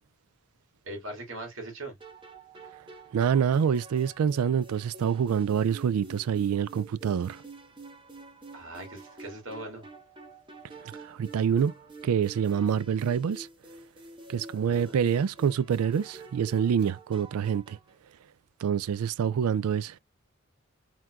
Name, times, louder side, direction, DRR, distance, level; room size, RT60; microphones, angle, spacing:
voice 1, 0.8-2.0 8.5-9.9 14.5-15.0, right 1 dB, 65° right, 2.2 m, -40 dB
sound 1, 2.0-17.9, right 3 dB, 20° right, 1.0 m, -48 dB
voice 2, 3.1-7.4 10.8-11.7 12.0-13.5 14.3-17.8 18.6-20.0, right 7 dB, 90° right, 0.3 m, -26 dB
4.6 x 3.7 x 2.3 m
head